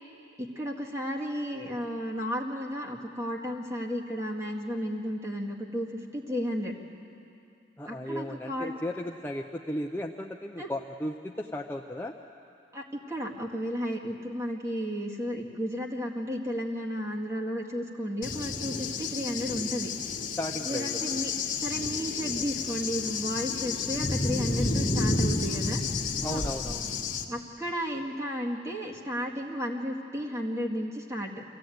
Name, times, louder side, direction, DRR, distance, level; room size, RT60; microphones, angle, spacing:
voice 1, 0.4-5.9 6.1-6.7 7.9-8.7 10.6-10.7 12.7-19.9 20.6-21.3 21.6-25.8 26.2-26.4 27.3-31.4, equal, 15° right, -1 dB, 1.9 m, -33 dB
voice 2, 7.8-12.1 20.4-21.2 26.2-26.8, left 1 dB, 10° left, 1 dB, 0.6 m, -35 dB
Cricket / Thunder, 18.2-27.2, left 3 dB, 45° left, 1.4 m, -31 dB
25.0 x 16.0 x 9.3 m, 2.7 s
head